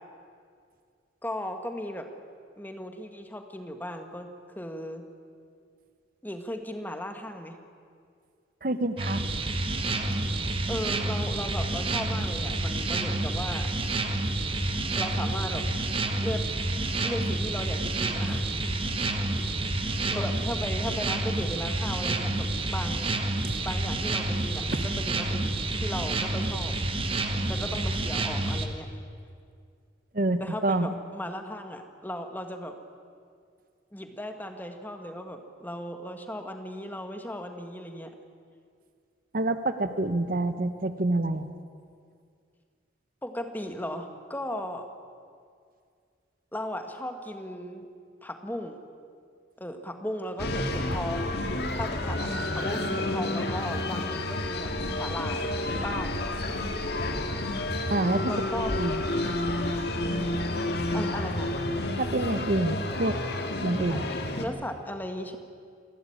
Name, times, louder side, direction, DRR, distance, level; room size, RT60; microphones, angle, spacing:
voice 1, 1.2-2.1 2.6-5.0 6.2-7.6 10.7-13.7 14.9-15.7 16.2-16.5 17.0-18.6 19.0-19.5 20.1-23.1 23.6-26.8 27.5-28.9 30.4-32.8 33.9-38.1 43.2-44.9 46.5-47.9 48.2-48.8 49.6-51.4 51.7-56.1 58.3-58.7 60.9-61.6 63.9-65.4, left 1 dB, 10° left, 6 dB, 1.5 m, -36 dB
voice 2, 8.6-9.2 23.4-23.6 24.7-24.9 30.1-30.9 39.3-41.5 57.9-58.3 58.8-59.0 62.0-63.2 63.6-64.0, right 2 dB, 50° right, 10 dB, 0.9 m, -27 dB
sound 1, 9.0-28.7, right 2 dB, 30° right, 1.5 m, -29 dB
sound 2, 50.4-64.4, left 1 dB, 60° left, 1.9 m, -30 dB
28.0 x 12.5 x 9.9 m, 2.2 s
head